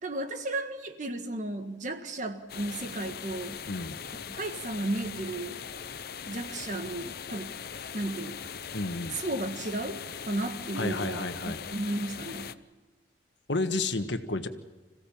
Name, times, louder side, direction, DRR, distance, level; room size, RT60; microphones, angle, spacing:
voice 1, 0.0-3.6 4.1-5.7 6.3-7.6 7.9-8.4 9.1-12.5, right 2 dB, 45° right, 7 dB, 1.7 m, -34 dB
sound 1, 2.5-12.5, left 7 dB, 55° left, 0.7 m, -40 dB
voice 2, 8.7-9.2 10.8-11.6 13.5-14.5, left 2 dB, 85° left, 8 dB, 1.5 m, -31 dB
26.5 x 16.5 x 7.2 m, 1.3 s
head